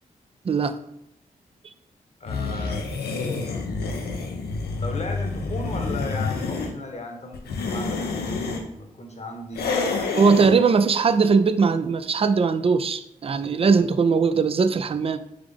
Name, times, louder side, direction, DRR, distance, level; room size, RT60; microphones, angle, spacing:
voice 1, 0.4-0.8 10.2-15.2, right 5 dB, 35° right, 12 dB, 0.3 m, -20 dB
voice 2, 2.2-3.1 4.8-10.1 10.4-10.6, left 2 dB, 45° left, 3 dB, 1.0 m, -36 dB
sound 1, 2.3-6.7 7.3-8.6 9.5-10.5, left 4 dB, 85° left, 0.6 m, -28 dB
3.5 x 3.5 x 3.4 m, 0.78 s
supercardioid pair, 40°, 16 cm